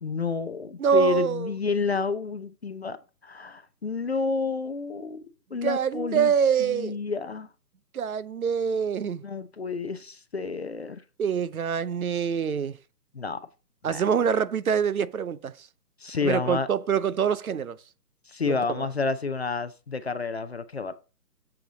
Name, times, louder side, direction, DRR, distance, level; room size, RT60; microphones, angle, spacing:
voice 1, 0.0-3.0 3.2-6.3 6.6-7.5 9.2-11.0 13.1-13.4 13.8-14.0 16.0-16.7 18.3-20.9, left 4 dB, 40° left, 0.5 m, -30 dB
voice 2, 0.8-1.5 2.0-2.1 5.6-7.0 7.9-9.2 11.2-12.8 13.8-15.5 16.2-17.8 18.5-18.9, right 7 dB, 60° right, 0.7 m, -25 dB
7.8 x 7.2 x 3.9 m
figure-of-eight pair, 150°, 50 cm